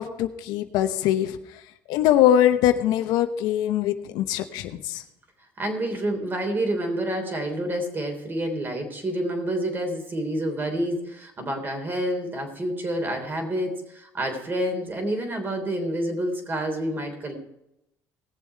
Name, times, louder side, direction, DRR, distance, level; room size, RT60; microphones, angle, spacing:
voice 1, 0.0-1.4 1.9-5.0, left 11 dB, 80° left, 9 dB, 0.9 m, -22 dB
voice 2, 5.6-17.3, right 1 dB, 30° right, 4 dB, 3.4 m, -28 dB
18.5 x 7.2 x 4.7 m, 0.85 s
cardioid pair, 95°, 7 cm